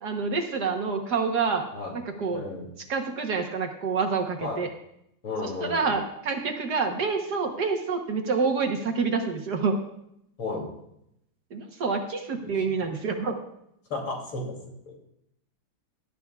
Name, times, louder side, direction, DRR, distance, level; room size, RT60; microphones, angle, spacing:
voice 1, 0.0-1.7 2.2-2.4 2.9-4.7 5.4-9.8 11.5-13.4, right 4 dB, 55° right, 4 dB, 1.5 m, -27 dB
voice 2, 2.3-2.7 4.4-4.6 5.2-5.9 10.4-10.7 12.4-12.5 12.8-12.9 13.9-15.0, left 3 dB, 75° left, 0 dB, 3.5 m, -34 dB
18.0 x 12.0 x 2.3 m, 0.77 s
omnidirectional pair, 2.3 m